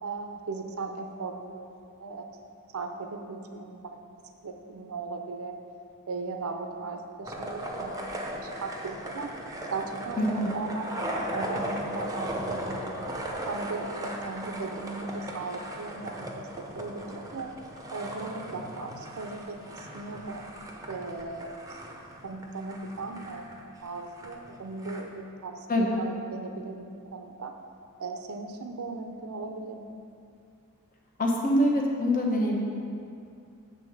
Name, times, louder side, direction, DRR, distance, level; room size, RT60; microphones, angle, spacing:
voice 1, 0.0-1.7 2.0-2.4 2.7-5.6 6.1-9.3 9.7-13.0 13.5-17.5 17.9-20.5 20.9-21.8 22.2-23.5 23.8-27.5 28.0-30.0, right 3 dB, 70° right, 5 dB, 0.6 m, -37 dB
sound 1, 7.2-25.0, right 1 dB, 15° right, 0.7 m, -37 dB
voice 2, 10.2-10.6 25.7-26.0 31.2-32.6, equal, 40° left, -1 dB, 1.0 m, -25 dB
8.4 x 3.8 x 6.5 m, 2.5 s
head